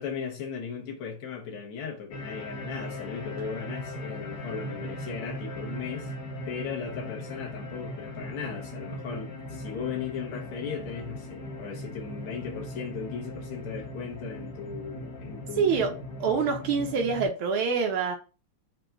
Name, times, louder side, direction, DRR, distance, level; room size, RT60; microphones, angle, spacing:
voice 1, 0.0-6.1 6.5-15.9, left 6 dB, 80° left, 1.8 m, -37 dB
sound 1, 2.1-17.3, left 1 dB, 55° left, 1.6 m, -39 dB
voice 2, 15.6-18.2, right 5 dB, 80° right, 1.6 m, -26 dB
5.1 x 2.2 x 4.5 m
omnidirectional pair, 2.4 m